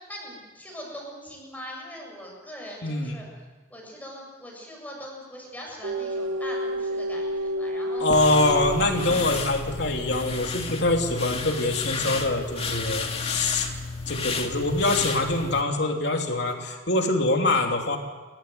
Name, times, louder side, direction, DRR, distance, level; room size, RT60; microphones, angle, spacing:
voice 1, 0.1-3.3 3.7-8.5 10.2-10.6, equal, 10° left, -1 dB, 7.5 m, -41 dB
voice 2, 2.8-3.2 8.0-13.7 14.1-18.0, left 2 dB, 60° left, 3 dB, 3.2 m, -24 dB
sound 1, 5.8-9.9, right 1 dB, 75° right, 1.9 m, -30 dB
sound 2, 8.1-15.6, left 4 dB, 30° left, 2.1 m, -32 dB
29.5 x 14.5 x 9.5 m, 1.3 s
head